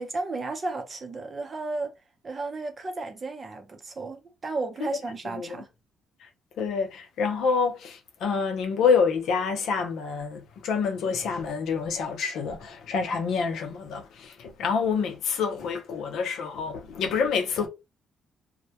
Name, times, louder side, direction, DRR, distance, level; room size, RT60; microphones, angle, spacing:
voice 1, 0.0-1.9 2.2-5.7, right 3 dB, 40° right, 0.6 m, -33 dB
voice 2, 6.6-17.7, left 5 dB, 80° left, 0.6 m, -27 dB
2.1 x 2.1 x 2.7 m
cardioid pair, 90°, 0 cm